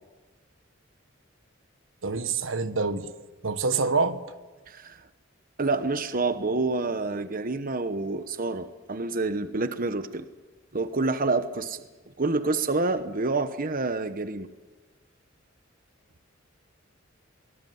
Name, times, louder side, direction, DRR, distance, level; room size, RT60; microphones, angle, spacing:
voice 1, 2.0-3.1 3.4-4.2, right 4 dB, 85° right, 1.4 m, -26 dB
voice 2, 4.7-5.0 5.6-10.3 10.7-11.8 12.2-14.5, right 3 dB, 45° right, 1.1 m, -28 dB
24.0 x 21.0 x 9.5 m
head